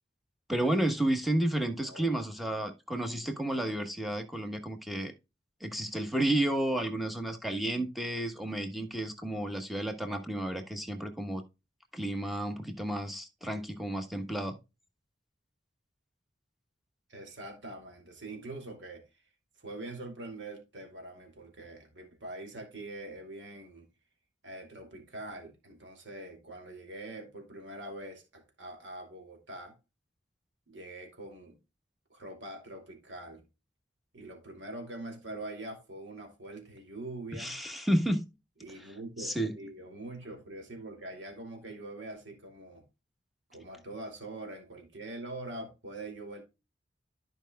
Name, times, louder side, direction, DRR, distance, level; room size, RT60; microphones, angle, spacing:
voice 1, 0.5-5.1 5.6-11.4 11.9-14.6 37.3-38.3 38.8-39.6, right 1 dB, ahead, 1.1 m, -31 dB
voice 2, 1.8-2.1 17.1-19.2 19.6-23.9 24.4-29.8 30.7-31.6 32.1-33.4 34.1-37.6 38.6-42.8 43.5-46.4, right 2 dB, 90° right, 2.4 m, -44 dB
13.5 x 5.2 x 2.2 m
head